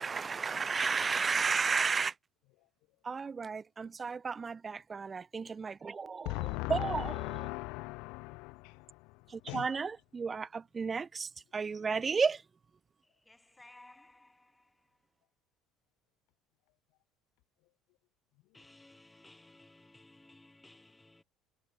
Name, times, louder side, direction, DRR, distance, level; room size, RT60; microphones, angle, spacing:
voice 1, 0.0-2.1 3.1-6.3 6.7-7.1 9.5-11.3 11.5-12.4, right 5 dB, 30° right, 0.4 m, -32 dB
voice 2, 6.2-9.8, left 26 dB, 75° left, 1.5 m, -39 dB
voice 3, 13.0-15.1 18.5-21.2, left 2 dB, 10° left, 2.8 m, -59 dB
hypercardioid pair, 75°, 0 cm